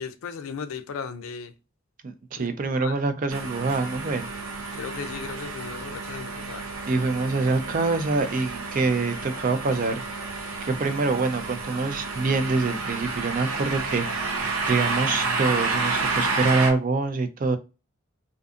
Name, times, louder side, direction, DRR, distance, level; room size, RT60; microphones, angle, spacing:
voice 1, 0.0-1.5 2.3-3.0 4.7-6.7, left 6 dB, 75° left, 0.4 m, -36 dB
voice 2, 2.0-4.3 6.9-10.0 10.6-17.6, right 3 dB, 40° right, 0.3 m, -25 dB
sound 1, 3.3-16.7, right 3 dB, 80° right, 0.6 m, -30 dB
2.5 x 2.4 x 2.4 m
head